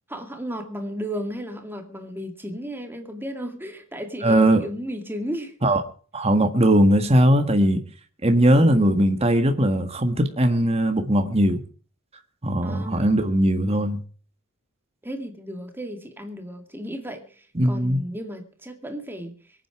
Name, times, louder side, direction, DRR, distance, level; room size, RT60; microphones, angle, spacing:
voice 1, 0.1-5.5 8.5-9.1 12.6-13.2 15.0-19.4, equal, 10° right, 2.3 m, -34 dB
voice 2, 4.2-4.6 5.6-5.8 6.1-7.8 8.2-11.6 12.4-14.0 17.5-18.0, right 1 dB, 30° right, 1.6 m, -19 dB
24.0 x 9.2 x 4.8 m
head